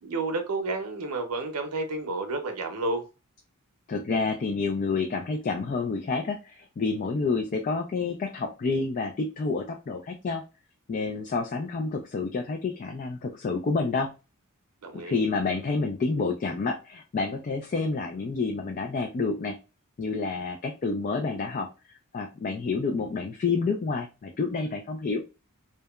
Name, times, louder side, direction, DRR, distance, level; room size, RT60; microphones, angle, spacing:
voice 1, 0.0-3.0 14.8-15.2, right 2 dB, 85° right, 0.6 m, -31 dB
voice 2, 3.9-10.4 10.9-14.1 14.9-19.5 20.0-21.7 22.1-25.2, left 4 dB, 35° left, 0.3 m, -29 dB
2.8 x 2.2 x 2.2 m
head